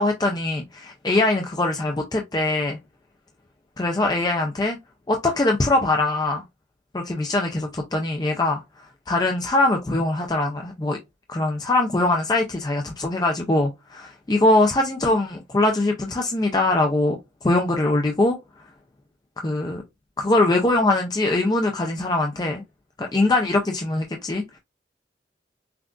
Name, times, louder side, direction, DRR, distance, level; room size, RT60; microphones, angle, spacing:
voice 1, 0.0-2.8 3.8-4.8 5.1-6.4 6.9-11.0 11.3-18.4 19.4-19.8 20.2-22.6 23.0-24.6, left 2 dB, 20° left, 0.4 m, -22 dB
5.8 x 2.4 x 2.4 m
head